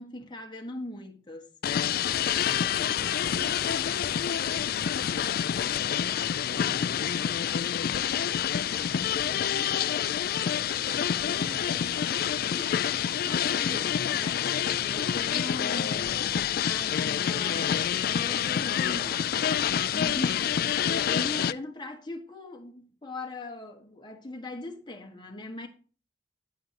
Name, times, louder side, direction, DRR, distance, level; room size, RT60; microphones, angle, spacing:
voice 1, 0.0-1.5 12.5-12.7 13.2-25.7, left 2 dB, 25° left, 1.5 m, -40 dB
sound 1, 1.6-21.5, left 9 dB, 55° left, 0.3 m, -27 dB
voice 2, 2.4-7.3 8.7-10.1 10.5-12.0 19.3-19.4 21.1-21.5, right 1 dB, 30° right, 5.0 m, -48 dB
10.0 x 9.1 x 2.8 m
head